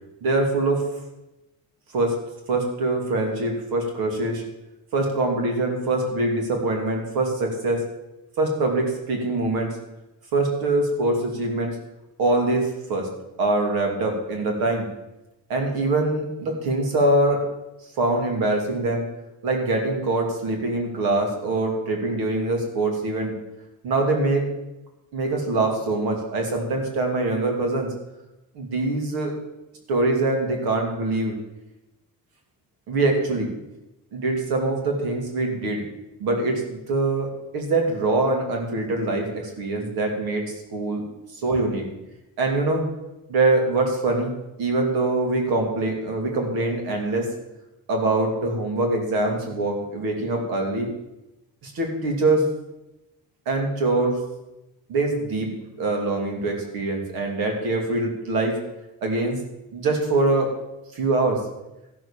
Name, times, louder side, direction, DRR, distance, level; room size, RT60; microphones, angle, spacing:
voice 1, 0.2-0.9 1.9-2.1 2.5-4.4 4.9-7.8 8.4-9.8 10.3-11.8 12.2-13.1 13.4-14.9 15.5-17.4 18.0-19.1 19.4-23.4 23.8-24.5 25.1-27.9 28.5-29.3 29.9-31.4 32.9-33.5 34.1-35.8 36.2-41.1 41.4-41.9 42.4-42.9 43.3-44.3 44.6-47.3 47.9-50.9 51.6-52.4 53.5-54.2 54.9-58.6 59.0-59.4 59.7-60.5 60.9-61.4, right 2 dB, 85° right, 3 dB, 2.8 m, -23 dB
14.0 x 6.5 x 7.3 m, 0.95 s
cardioid pair, 75°, 36 cm